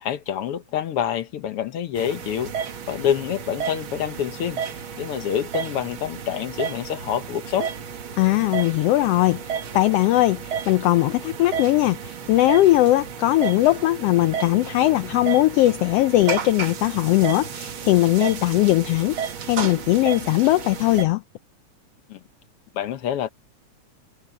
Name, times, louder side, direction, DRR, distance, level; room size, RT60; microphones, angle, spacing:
voice 1, 0.0-2.5 2.9-4.6 5.0-7.7 22.1-22.2 22.7-23.3, left 9 dB, 65° left, 1.5 m, -27 dB
sound 1, 2.0-21.1, right 7 dB, 50° right, 2.0 m, -32 dB
voice 2, 8.2-19.2 19.5-21.2, left 16 dB, 85° left, 1.4 m, -19 dB
omnidirectional pair, 3.4 m